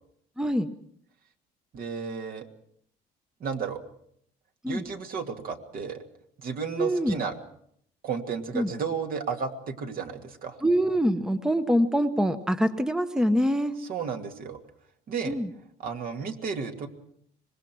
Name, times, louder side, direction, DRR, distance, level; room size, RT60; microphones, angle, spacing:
voice 1, 0.4-0.7 4.6-4.8 6.8-7.2 8.5-8.7 10.6-13.7 15.3-15.5, equal, 5° right, 10 dB, 0.9 m, -24 dB
voice 2, 1.7-2.5 3.4-3.8 4.7-6.0 6.4-7.4 8.0-10.6 13.8-14.6 15.1-15.4 15.8-16.9, right 6 dB, 60° right, 5 dB, 2.5 m, -33 dB
25.0 x 20.5 x 6.2 m, 0.68 s
cardioid pair, 110°, 17 cm